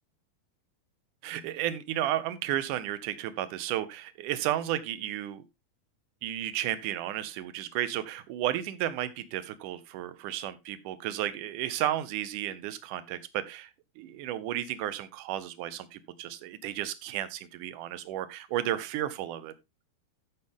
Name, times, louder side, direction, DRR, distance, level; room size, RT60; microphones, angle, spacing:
voice 1, 1.2-5.4 6.2-13.7 14.0-19.5, right 12 dB, 70° right, 2.2 m, -33 dB
14.0 x 6.2 x 3.6 m
omnidirectional pair, 4.4 m